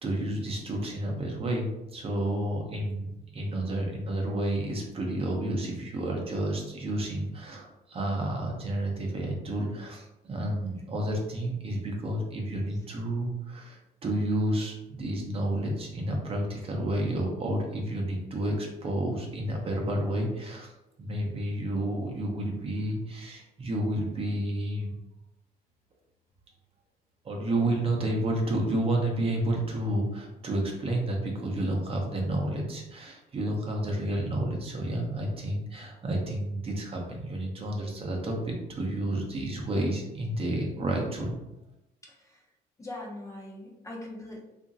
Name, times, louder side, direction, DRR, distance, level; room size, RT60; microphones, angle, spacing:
voice 1, 0.0-20.7 21.0-24.9 27.2-41.3, right 1 dB, 35° right, 0 dB, 0.7 m, -30 dB
voice 2, 27.5-27.9 40.8-41.0 42.0-42.4 42.8-44.4, left 1 dB, 20° left, -2 dB, 0.6 m, -42 dB
2.9 x 2.5 x 2.6 m, 0.91 s
cardioid pair, 110°, 17 cm